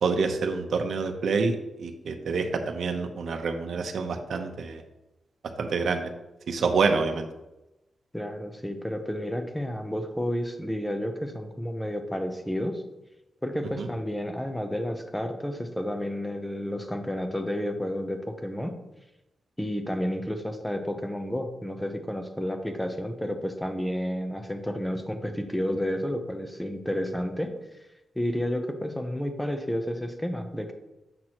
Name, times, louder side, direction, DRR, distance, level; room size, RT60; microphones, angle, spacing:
voice 1, 0.0-4.8 5.6-6.1 6.5-7.3 13.8-13.9, right 4 dB, 70° right, 5 dB, 0.7 m, -27 dB
voice 2, 8.1-12.8 13.4-18.8 19.6-27.5 28.2-30.7, equal, 5° left, 6 dB, 0.8 m, -31 dB
7.6 x 6.0 x 2.9 m, 0.95 s
wide cardioid pair, 120°, 0 cm